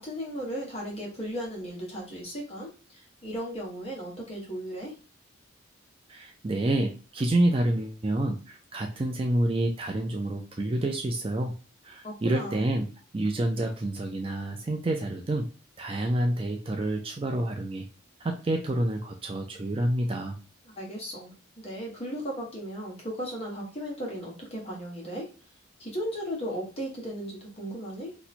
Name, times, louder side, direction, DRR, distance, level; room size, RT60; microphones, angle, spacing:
voice 1, 0.0-4.9 12.0-12.7 20.6-25.3 25.8-28.2, equal, 30° left, -2 dB, 1.2 m, -36 dB
voice 2, 6.1-11.5 11.8-12.9 13.1-15.5 15.8-17.8 18.2-20.4, right 1 dB, 25° right, 3 dB, 0.4 m, -28 dB
2.8 x 2.2 x 4.1 m, 0.34 s
head